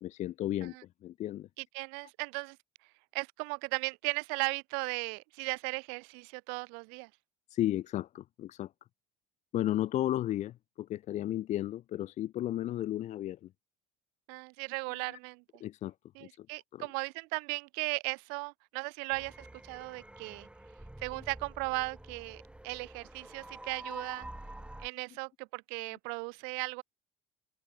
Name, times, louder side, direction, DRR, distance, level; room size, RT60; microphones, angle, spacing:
voice 1, 0.0-1.5 7.5-8.7 9.5-13.5 15.1-15.2 15.6-15.9 16.2-16.5 16.7-16.9, left 13 dB, 40° left, 0.5 m, -34 dB
voice 2, 1.7-2.6 3.1-7.1 14.3-15.4 16.2-20.5 21.0-24.3 24.8-26.8, right 39 dB, 55° right, 0.6 m, -37 dB
sound 1, 19.1-24.9, right 1 dB, 5° right, 1.7 m, -48 dB
open air
figure-of-eight pair, 65°, 19 cm